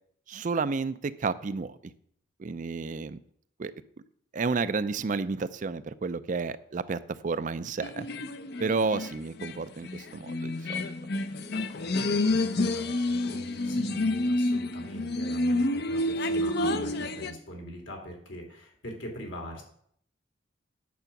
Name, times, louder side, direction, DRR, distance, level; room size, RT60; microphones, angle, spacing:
voice 1, 0.3-1.9 2.4-3.2 3.6-3.7 4.3-8.1 8.6-10.9, right 4 dB, 40° right, 14 dB, 0.4 m, -31 dB
sound 1, 7.8-17.3, left 2 dB, 55° left, 0.7 m, -29 dB
voice 2, 11.4-19.6, equal, 75° left, 1 dB, 2.9 m, -43 dB
9.4 x 6.9 x 5.9 m, 0.66 s
head